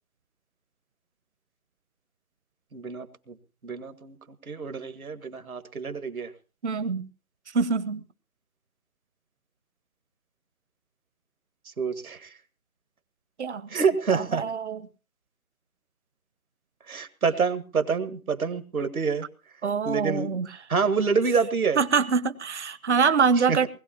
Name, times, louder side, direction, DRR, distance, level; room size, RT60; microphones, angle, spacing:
voice 1, 2.7-3.4 3.6-4.2 4.5-6.3 11.7-12.3 13.7-14.4 16.9-19.3 19.9-20.4 20.7-21.8 23.5-23.7, right 5 dB, 75° right, 10 dB, 1.9 m, -27 dB
voice 2, 6.6-7.1 7.5-8.0 13.4-13.8 14.1-14.8 19.6-20.5 21.8-23.7, right 5 dB, 50° right, 14 dB, 1.0 m, -24 dB
20.5 x 16.5 x 2.9 m, 0.35 s
figure-of-eight pair, 155°, 43 cm